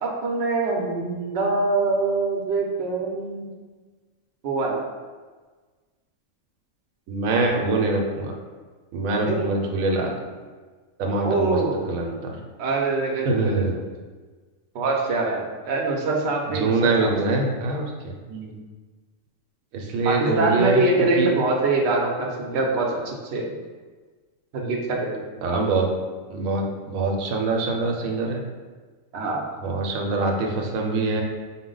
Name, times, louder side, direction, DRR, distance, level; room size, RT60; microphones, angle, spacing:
voice 1, 0.0-3.5 4.4-4.8 9.2-9.4 11.2-11.8 12.6-13.8 14.7-17.4 18.3-18.5 20.0-23.5 24.5-25.2 29.1-29.4, right 3 dB, 65° right, -1 dB, 0.9 m, -24 dB
voice 2, 7.1-8.3 8.9-10.2 11.0-11.6 11.9-12.3 13.2-13.7 16.5-18.1 19.7-20.8 21.2-21.3 25.4-25.9 26.3-28.4 29.6-31.2, right 3 dB, 90° right, 1 dB, 1.0 m, -24 dB
4.3 x 2.1 x 3.8 m, 1.4 s
omnidirectional pair, 1.4 m